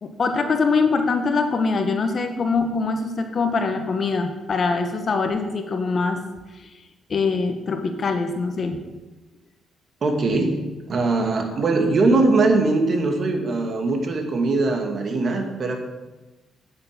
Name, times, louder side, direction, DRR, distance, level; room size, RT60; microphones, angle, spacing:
voice 1, 0.0-6.2 7.1-8.8, left 4 dB, 45° left, 6 dB, 1.6 m, -23 dB
voice 2, 10.0-10.6 10.9-15.8, right 3 dB, 50° right, 3 dB, 2.4 m, -21 dB
9.7 x 8.5 x 7.6 m, 1.1 s
cardioid pair, 90°, 0 cm